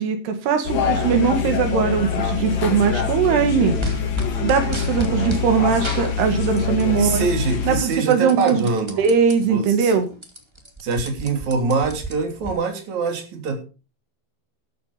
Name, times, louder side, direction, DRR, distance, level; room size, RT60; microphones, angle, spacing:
voice 1, 0.0-3.8 4.4-7.3 7.7-8.7 9.0-10.1, right 6 dB, 85° right, 7 dB, 3.9 m, -20 dB
sound 1, 0.7-7.8, left 6 dB, 60° left, 4.1 m, -24 dB
sound 2, 3.8-5.5 5.8-7.0 7.3-9.3 9.8-9.9 10.1-12.5, right 1 dB, 20° right, 0.8 m, -32 dB
voice 2, 7.0-9.1 9.4-9.9 10.8-13.6, right 4 dB, 50° right, 4 dB, 4.2 m, -24 dB
13.0 x 11.0 x 5.0 m, 0.34 s
omnidirectional pair, 4.6 m